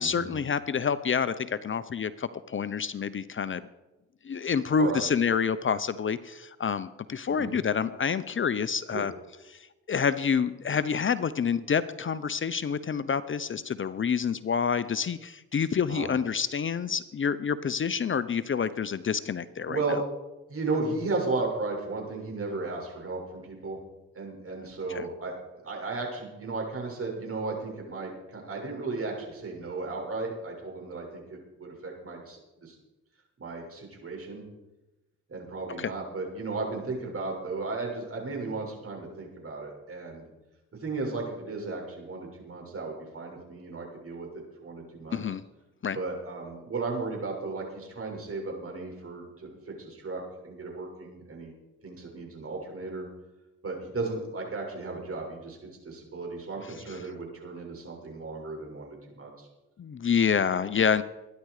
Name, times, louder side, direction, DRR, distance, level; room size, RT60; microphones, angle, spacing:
voice 1, 0.0-3.7 4.2-9.1 9.5-19.8 24.9-25.1 35.8-35.9 45.1-45.4 45.8-46.0 59.8-61.0, left 6 dB, 40° left, 14 dB, 0.8 m, -28 dB
voice 2, 19.7-20.0 20.5-23.8 24.1-32.8 33.4-34.4 35.3-40.2 40.8-45.2 45.9-51.5 51.8-53.1 53.6-55.6 55.8-59.5, right 3 dB, 45° right, 0 dB, 6.8 m, -35 dB
22.5 x 10.5 x 5.0 m, 1.0 s
supercardioid pair, 65°, 30 cm